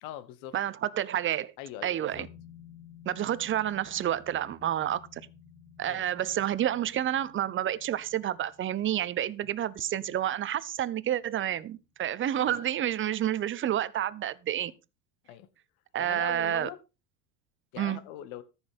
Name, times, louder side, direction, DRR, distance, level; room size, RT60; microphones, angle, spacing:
voice 1, 0.0-0.6 1.6-2.3 5.9-6.1 12.4-12.6 14.6-14.7 15.2-15.5 16.0-16.8 17.7-18.4, left 12 dB, 55° left, 1.5 m, -42 dB
voice 2, 0.5-1.5 1.8-2.3 3.1-5.0 5.8-14.7 15.9-16.7 17.8-18.0, right 11 dB, 25° right, 0.8 m, -29 dB
sound 1, 2.1-11.2 11.5-11.6, left 7 dB, 80° left, 2.9 m, -54 dB
14.0 x 6.4 x 5.2 m
hypercardioid pair, 85°, 50 cm